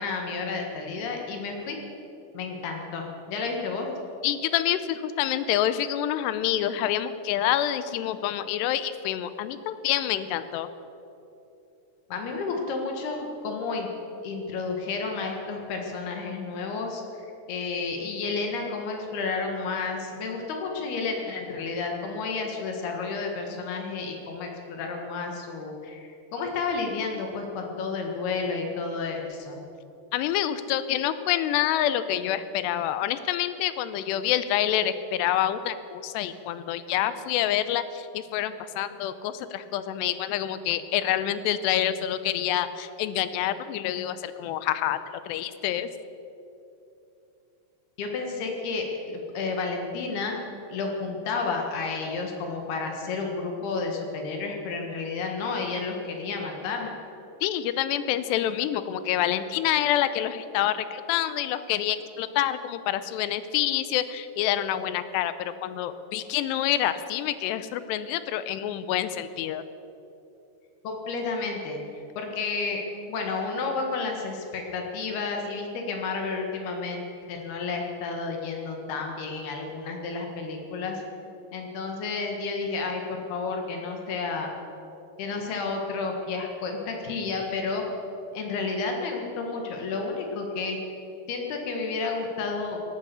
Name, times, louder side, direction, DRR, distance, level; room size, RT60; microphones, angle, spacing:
voice 1, 0.0-1.8 2.3-3.9 12.1-13.9 14.2-29.6 48.0-50.4 50.7-56.9 70.8-71.8 72.2-72.8 73.1-81.0 81.5-84.5 85.2-87.8 88.3-90.8 91.3-92.9, left 4 dB, 70° left, 2 dB, 3.6 m, -31 dB
voice 2, 4.2-10.7 30.1-45.0 45.3-45.9 57.4-69.6, left 11 dB, 85° left, 13 dB, 2.8 m, -27 dB
18.5 x 10.5 x 7.0 m, 2.8 s
omnidirectional pair, 4.8 m